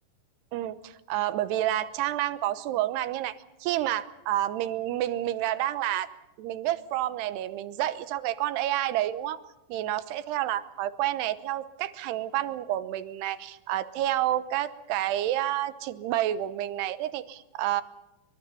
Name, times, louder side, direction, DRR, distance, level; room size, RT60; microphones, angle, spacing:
voice 1, 0.5-6.1 6.4-9.4 9.7-17.8, right 13 dB, 75° right, 12 dB, 2.8 m, -29 dB
24.5 x 24.5 x 5.6 m, 0.90 s
omnidirectional pair, 5.3 m